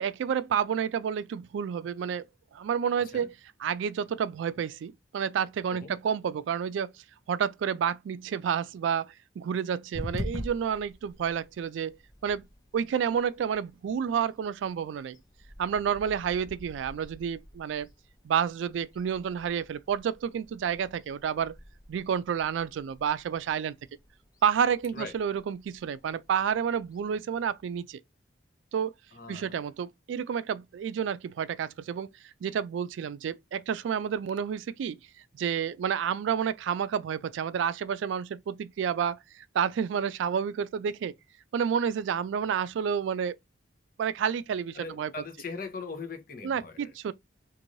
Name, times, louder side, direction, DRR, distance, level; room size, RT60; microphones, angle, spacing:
voice 1, 0.0-2.3 2.5-3.3 3.6-6.9 7.3-12.0 12.2-12.4 12.7-15.2 15.6-17.9 18.2-21.5 21.9-23.7 24.4-28.0 28.7-28.9 29.3-32.1 32.4-35.0 35.3-39.2 39.5-41.1 41.5-43.4 44.0-45.1 46.4-47.1, right 7 dB, 80° right, 0.3 m, -30 dB
voice 2, 3.0-3.3 5.7-6.0 24.9-25.2 29.1-29.6 44.7-46.9, left 4 dB, 50° left, 0.8 m, -40 dB
sound 1, 9.9-27.8, left 1 dB, 20° left, 0.5 m, -46 dB
3.0 x 2.6 x 2.5 m
head